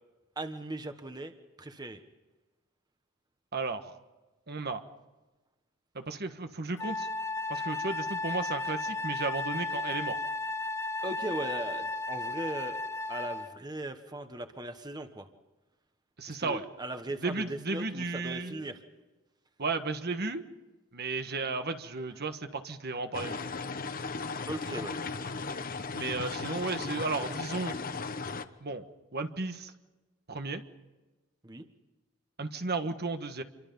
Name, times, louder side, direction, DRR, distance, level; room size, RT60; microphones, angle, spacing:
voice 1, 0.4-2.0 11.0-12.8 13.1-15.3 16.3-18.8 24.5-24.9 31.4-31.6, right 1 dB, 20° right, 8 dB, 1.3 m, -38 dB
voice 2, 3.5-4.0 4.5-4.8 5.9-7.1 7.5-10.2 16.2-16.6 17.2-18.6 19.6-20.5 20.9-23.4 25.9-27.8 28.6-28.8 29.1-29.7 30.3-30.6 32.4-33.4, right 3 dB, 50° right, 8 dB, 1.4 m, -34 dB
Wind instrument woodwind instrument, 6.8-13.6, left 2 dB, 15° left, 0.8 m, -34 dB
sound 1, 23.1-28.5, left 4 dB, 45° left, 1.1 m, -36 dB
28.0 x 23.5 x 5.5 m, 1.2 s
head